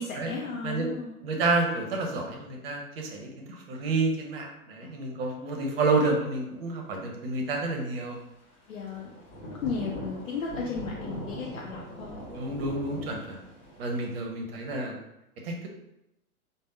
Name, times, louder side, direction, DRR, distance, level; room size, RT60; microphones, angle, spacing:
voice 1, 0.0-1.1 4.8-4.9 8.7-9.1 9.6-12.2, left 5 dB, 60° left, -1 dB, 0.6 m, -35 dB
voice 2, 1.2-8.2 12.3-13.4 13.8-15.0 15.4-15.6, right 3 dB, 40° right, 2 dB, 0.8 m, -29 dB
Thunder / Rain, 8.7-14.2, equal, 40° left, 1.3 m, -41 dB
3.4 x 2.1 x 3.7 m, 0.88 s
figure-of-eight pair, 100°, 45 cm